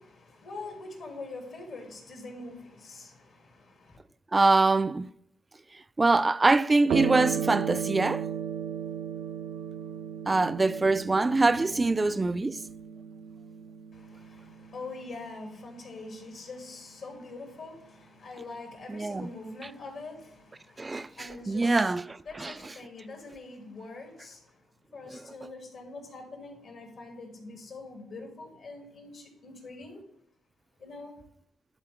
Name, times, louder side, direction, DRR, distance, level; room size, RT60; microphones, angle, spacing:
voice 1, 0.0-4.0 13.9-21.9 22.2-24.6 24.9-30.0 30.8-31.1, left 3 dB, 65° left, 2.6 m, -44 dB
voice 2, 4.3-5.1 6.0-8.2 10.3-12.6 18.9-19.3 20.8-22.5 25.1-25.2, right 3 dB, 25° right, 0.3 m, -24 dB
sound 1, 6.9-15.7, right 8 dB, 80° right, 0.5 m, -35 dB
11.0 x 3.9 x 3.4 m
cardioid pair, 80°, 0 cm